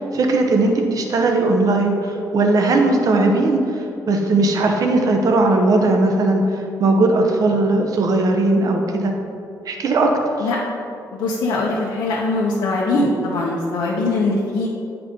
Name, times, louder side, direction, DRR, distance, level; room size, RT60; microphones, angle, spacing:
voice 1, 0.0-6.4 6.8-9.1 9.7-10.1, right 2 dB, 55° right, 3 dB, 0.9 m, -18 dB
voice 2, 11.1-14.7, left 2 dB, 85° left, -5 dB, 0.9 m, -21 dB
9.2 x 4.9 x 3.7 m, 2.6 s
cardioid pair, 95°, 7 cm